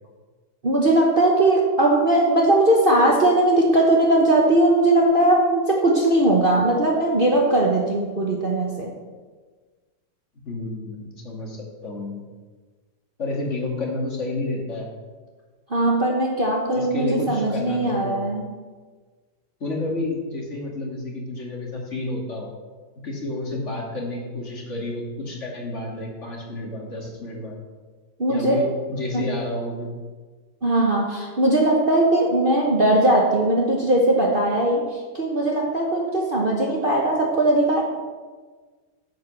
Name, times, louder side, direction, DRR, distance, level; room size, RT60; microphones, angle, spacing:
voice 1, 0.6-8.9 15.7-18.5 28.2-28.7 29.1-29.3 30.6-34.9 35.1-37.8, right 1 dB, 35° right, -1 dB, 1.2 m, -19 dB
voice 2, 10.5-12.2 13.2-14.9 16.7-18.3 19.6-22.5 23.0-27.6 28.3-29.9, left 2 dB, 40° left, -1 dB, 2.2 m, -30 dB
9.1 x 7.7 x 6.3 m, 1.4 s
omnidirectional pair, 1.9 m